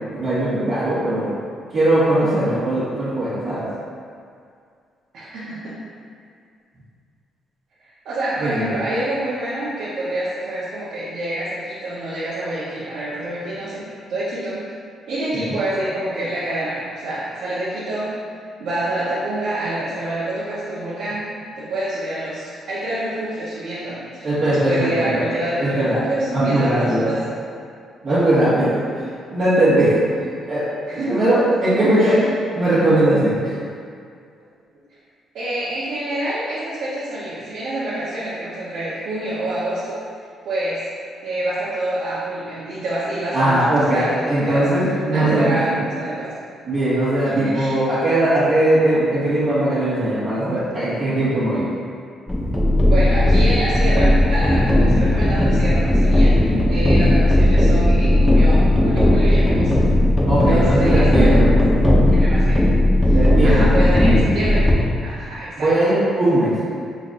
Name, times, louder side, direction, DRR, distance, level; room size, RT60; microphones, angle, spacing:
voice 1, 0.1-1.3 1.7-3.7 8.4-8.8 15.3-15.5 24.2-25.2 25.6-26.0 26.3-27.1 28.0-28.7 29.3-30.0 30.5-30.6 30.9-32.2 32.5-33.5 43.3-45.8 46.6-51.7 56.4-56.6 60.3-61.5 63.1-64.3 65.6-66.5, right 1 dB, 45° right, -13 dB, 1.4 m, -19 dB
voice 2, 5.1-5.8 8.0-13.8 14.1-14.6 15.1-18.1 18.6-21.2 21.6-27.4 30.9-31.5 32.0-32.2 35.3-40.0 40.4-40.8 41.2-44.6 45.1-46.3 47.3-47.8 52.8-56.3 56.7-59.7 60.3-61.5 62.1-62.7 63.1-63.2 63.4-64.6 65.0-65.7, right 1 dB, 80° right, -11 dB, 1.1 m, -27 dB
sound 1, 52.3-64.7, left 1 dB, 15° left, 0.8 m, -16 dB
5.1 x 4.0 x 2.6 m, 2.2 s
cardioid pair, 90°, 0 cm